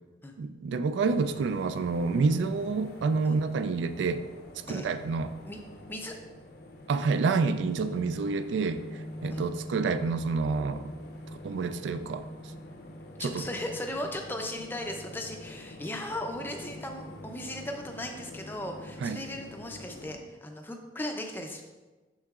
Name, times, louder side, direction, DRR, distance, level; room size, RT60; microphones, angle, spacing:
voice 1, 0.4-4.2 4.7-5.3 6.9-10.9 11.3-12.3 13.2-13.5 19.0-19.3, right 4 dB, 70° right, 11 dB, 0.3 m, -28 dB
sound 1, 1.0-20.2, left 1 dB, 55° left, 0.6 m, -45 dB
voice 2, 13.2-21.6, left 1 dB, 10° left, 3 dB, 0.4 m, -37 dB
11.0 x 3.8 x 2.4 m, 1.2 s
head